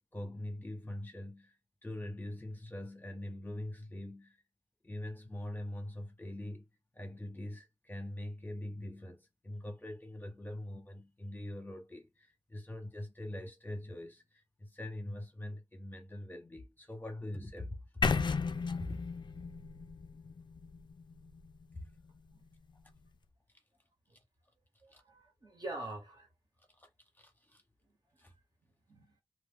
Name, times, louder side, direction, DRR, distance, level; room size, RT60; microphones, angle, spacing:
voice 1, 0.1-1.6 1.8-4.4 4.8-6.6 6.9-18.2 18.8-19.0 24.9-25.0 26.8-26.9 27.2-27.6 28.2-28.3, left 1 dB, 20° left, 0.9 m, -43 dB
sound 1, 18.0-22.0, left 5 dB, 55° left, 0.3 m, -35 dB
voice 2, 24.8-26.3 28.6-29.1, right 2 dB, 45° right, 1.4 m, -45 dB
2.4 x 2.4 x 3.4 m
wide cardioid pair, 90°, 10 cm